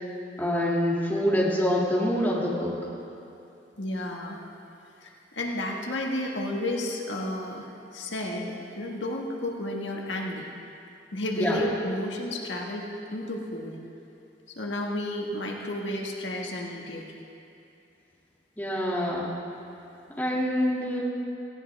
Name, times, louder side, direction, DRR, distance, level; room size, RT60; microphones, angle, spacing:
voice 1, 0.4-2.7 11.4-11.6 18.6-19.4 20.2-21.0, equal, 10° left, -6 dB, 2.5 m, -25 dB
voice 2, 3.8-4.4 5.0-7.7 7.9-10.4 11.1-13.8 14.5-17.0, left 1 dB, 90° left, -1 dB, 1.7 m, -32 dB
18.5 x 16.5 x 3.6 m, 2.7 s
head